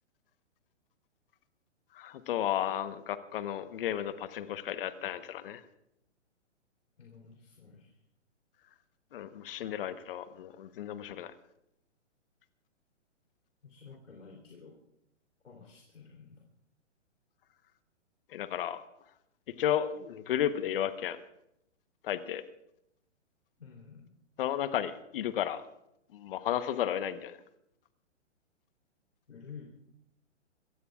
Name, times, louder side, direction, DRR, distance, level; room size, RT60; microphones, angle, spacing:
voice 1, 1.9-5.6 9.1-11.3 18.3-18.8 19.6-21.2 22.0-22.4 24.4-25.6 26.1-27.4, left 10 dB, 50° left, 11 dB, 1.2 m, -33 dB
voice 2, 7.0-8.0 13.6-14.8 15.4-16.5 23.6-24.1 29.3-29.7, left 5 dB, 75° left, -1 dB, 3.6 m, -51 dB
26.0 x 16.0 x 2.5 m, 0.81 s
hypercardioid pair, 135°, 36 cm